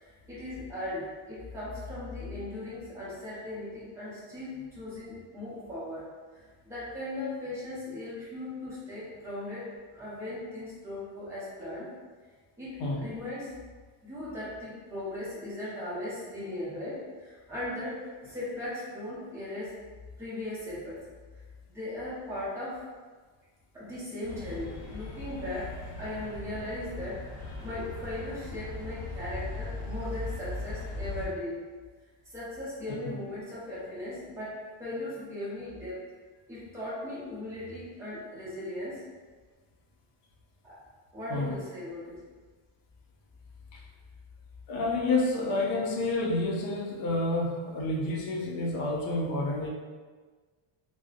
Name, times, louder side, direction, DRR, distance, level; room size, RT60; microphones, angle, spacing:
voice 1, 0.0-6.1 6.3-11.9 12.6-13.5 14.0-19.8 20.2-21.0 21.7-22.8 23.7-31.6 32.2-36.0 36.5-39.0 40.6-40.8 41.1-42.2, left 1 dB, 5° right, -10 dB, 0.5 m, -38 dB
sound 1, 24.2-31.3, left 2 dB, 30° left, 1.0 m, -39 dB
voice 2, 44.7-49.7, left 2 dB, 60° left, -1 dB, 0.5 m, -29 dB
2.6 x 2.0 x 2.4 m, 1.4 s
cardioid pair, 170°, 50 cm